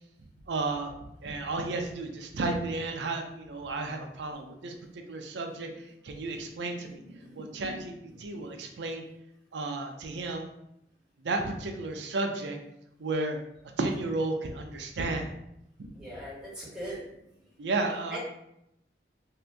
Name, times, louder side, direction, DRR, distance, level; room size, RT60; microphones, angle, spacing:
voice 1, 0.5-0.9 1.2-7.0 7.3-9.0 9.5-10.5 11.2-12.6 13.0-13.4 13.8-15.3 17.6-18.2, right 2 dB, 90° right, 4 dB, 0.5 m, -33 dB
voice 2, 6.9-7.6 15.9-17.0 18.1-18.2, right 1 dB, 5° right, -10 dB, 1.3 m, -41 dB
2.8 x 2.5 x 3.4 m, 0.81 s
head